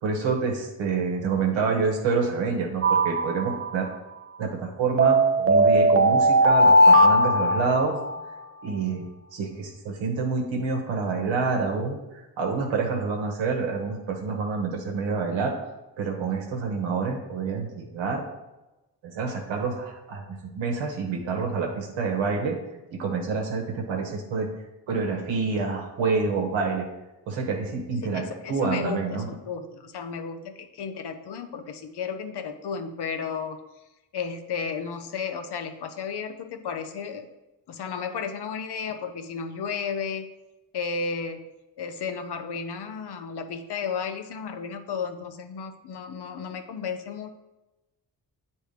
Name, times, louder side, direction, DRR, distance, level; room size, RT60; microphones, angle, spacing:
voice 1, 0.0-3.9 4.4-8.0 8.6-15.5 16.0-18.2 19.0-22.6 22.9-24.5 24.9-26.9 27.3-28.2 28.5-29.3, right 4 dB, 85° right, 2 dB, 1.2 m, -27 dB
sound 1, 2.8-3.9 5.0-8.2, right 1 dB, 30° right, 0.6 m, -18 dB
voice 2, 28.0-33.6 34.1-37.3 37.7-40.3 40.7-41.4 41.8-47.3, left 6 dB, 60° left, 7 dB, 0.8 m, -33 dB
9.0 x 3.2 x 3.3 m, 1.0 s
supercardioid pair, 45°, 44 cm